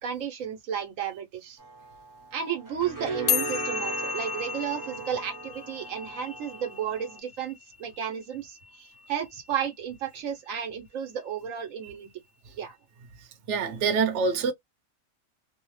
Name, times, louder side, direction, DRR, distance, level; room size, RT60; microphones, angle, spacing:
voice 1, 0.0-1.6 2.3-12.1 12.6-12.8, right 8 dB, 85° right, 1.2 m, -33 dB
sound 1, 1.6-7.2, right 3 dB, 20° right, 0.6 m, -38 dB
sound 2, 3.3-9.9, left 8 dB, 75° left, 0.9 m, -34 dB
voice 2, 13.5-14.5, right 5 dB, 65° right, 1.0 m, -25 dB
2.8 x 2.1 x 3.0 m
omnidirectional pair, 1.3 m